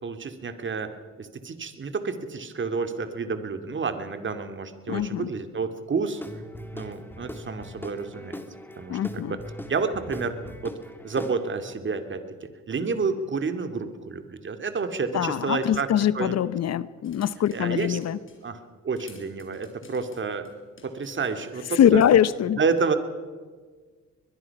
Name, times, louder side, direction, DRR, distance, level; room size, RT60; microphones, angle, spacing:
voice 1, 0.0-6.2 6.7-8.4 8.8-9.4 9.7-10.4 10.6-10.8 11.0-16.3 17.5-18.0 18.4-20.5 20.8-22.0 22.6-23.0, right 4 dB, 40° right, 8 dB, 2.4 m, -30 dB
voice 2, 4.9-5.3 8.9-9.4 15.1-18.2 21.8-22.6, left 10 dB, 55° left, 17 dB, 0.8 m, -22 dB
Guitar / Drum, 6.2-11.7, left 1 dB, 5° left, 2.4 m, -40 dB
sound 1, 17.0-18.5 19.0-22.2, left 4 dB, 40° left, 5.4 m, -52 dB
23.0 x 21.0 x 5.9 m, 1.5 s
cardioid pair, 90°, 30 cm